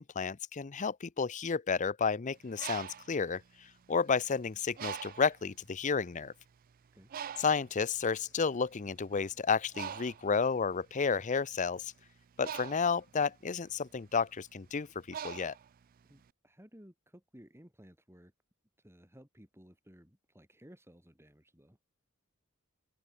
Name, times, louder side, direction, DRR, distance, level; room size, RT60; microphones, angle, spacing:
voice 1, 0.0-3.4 3.9-6.3 7.4-11.9 12.4-15.5, left 5 dB, 35° left, 0.6 m, -31 dB
Bird, 2.4-4.2 4.8-5.5 6.1-6.3 6.5-16.3, right 9 dB, 40° right, 0.4 m, -44 dB
voice 2, 16.0-18.3 18.8-21.8, equal, 10° right, 4.4 m, -57 dB
open air
head